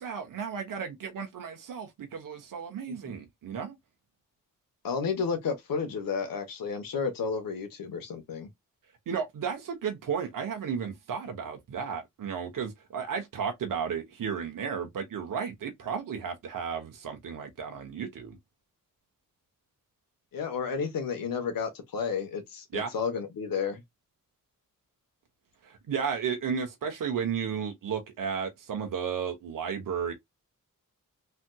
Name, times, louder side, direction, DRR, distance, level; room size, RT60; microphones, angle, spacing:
voice 1, 0.0-3.8 9.1-18.4 22.7-22.9 25.6-30.1, right 7 dB, 70° right, 1.0 m, -33 dB
voice 2, 4.8-8.5 20.3-23.8, left 5 dB, 80° left, 1.1 m, -32 dB
3.3 x 2.8 x 2.2 m
wide cardioid pair, 105°, 34 cm